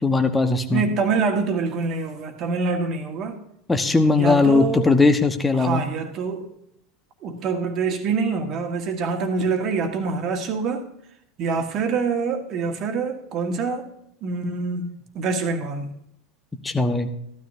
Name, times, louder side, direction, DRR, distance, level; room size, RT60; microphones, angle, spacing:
voice 1, 0.0-0.8 3.7-5.8 16.6-17.1, left 3 dB, 15° left, 7 dB, 1.2 m, -19 dB
voice 2, 0.7-3.4 4.2-4.9 5.6-6.5 7.2-10.9 11.4-13.9 14.2-15.9, right 4 dB, 40° right, 6 dB, 1.6 m, -25 dB
15.0 x 12.5 x 2.7 m, 0.75 s
figure-of-eight pair, 80°, 0 cm